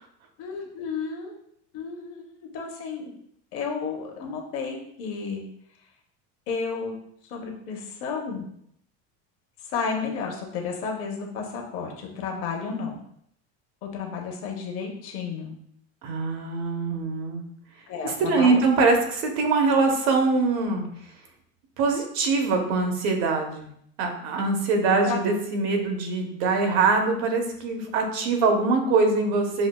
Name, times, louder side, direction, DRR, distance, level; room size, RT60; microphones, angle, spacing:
voice 1, 0.4-1.3 1.7-3.1 3.5-5.4 6.5-7.0 7.3-8.5 9.7-13.0 13.8-15.6 17.9-18.6 25.0-25.2, left 5 dB, 45° left, 1 dB, 0.7 m, -32 dB
voice 2, 16.0-17.4 18.0-20.9 21.8-23.7 24.0-29.7, right 3 dB, 75° right, 3 dB, 0.9 m, -23 dB
6.0 x 2.3 x 2.2 m, 0.70 s
cardioid pair, 180°, 33 cm